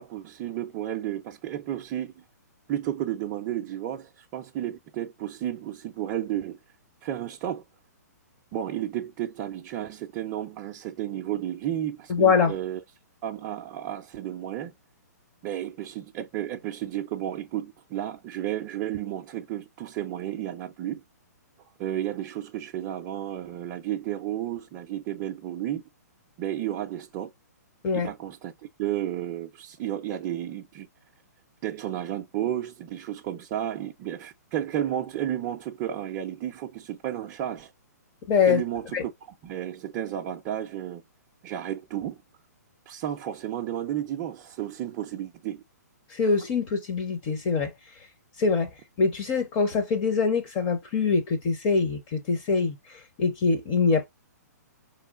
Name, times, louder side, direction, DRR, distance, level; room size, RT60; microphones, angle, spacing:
voice 1, 0.0-2.2 2.7-6.6 7.0-7.6 8.5-12.8 13.2-14.7 15.4-21.0 21.8-25.8 26.4-27.3 27.9-28.5 28.8-30.9 31.6-37.7 38.5-39.1 39.4-41.0 41.4-42.2 42.9-45.6, right 11 dB, 25° right, 0.4 m, -32 dB
voice 2, 12.1-12.5 27.8-28.1 38.3-38.6 38.9-39.0 46.1-47.7 48.4-48.7 49.0-54.1, left 5 dB, 25° left, 0.6 m, -24 dB
4.4 x 3.1 x 2.4 m
hypercardioid pair, 155°, 9 cm